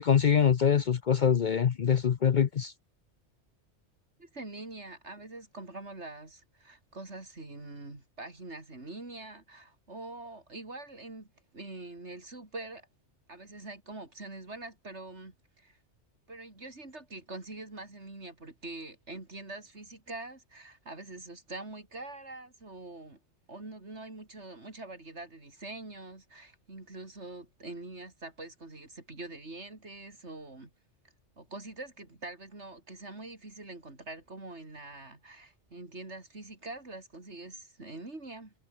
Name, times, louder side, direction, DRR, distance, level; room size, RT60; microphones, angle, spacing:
voice 1, 0.0-2.7, left 7 dB, 50° left, 0.7 m, -24 dB
voice 2, 4.2-11.3 11.5-12.9 13.3-15.8 16.3-23.2 23.5-30.7 31.4-38.5, right 2 dB, 70° right, 4.6 m, -44 dB
omnidirectional pair, 1.2 m